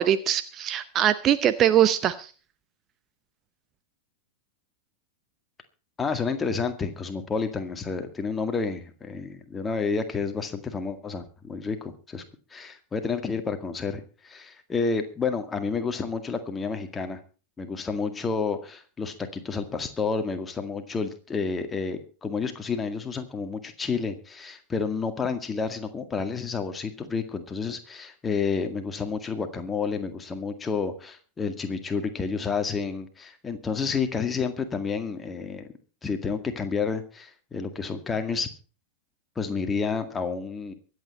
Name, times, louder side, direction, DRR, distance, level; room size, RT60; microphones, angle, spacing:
voice 1, 0.0-2.3, right 10 dB, 30° right, 12 dB, 0.8 m, -22 dB
voice 2, 6.0-12.2 12.5-17.2 17.6-35.7 36.0-38.5 39.4-40.7, left 5 dB, 15° left, 7 dB, 2.0 m, -30 dB
23.5 x 8.5 x 4.2 m, 0.37 s
figure-of-eight pair, 90°, 0 cm